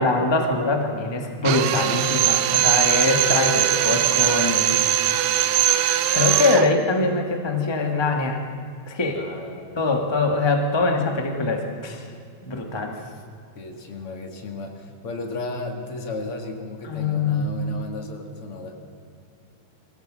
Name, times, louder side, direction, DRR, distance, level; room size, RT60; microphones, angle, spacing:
voice 1, 0.0-4.8 6.1-8.4 8.9-9.2 9.7-12.1 12.4-12.9 16.8-17.5, left 3 dB, 20° left, 3 dB, 0.6 m, -23 dB
Drill, 1.4-6.7, right 12 dB, 75° right, 1.8 m, -21 dB
voice 2, 9.1-9.8 12.9-13.2 13.5-18.8, left 3 dB, 50° left, 3 dB, 2.4 m, -35 dB
22.5 x 16.0 x 7.5 m, 2.4 s
omnidirectional pair, 3.7 m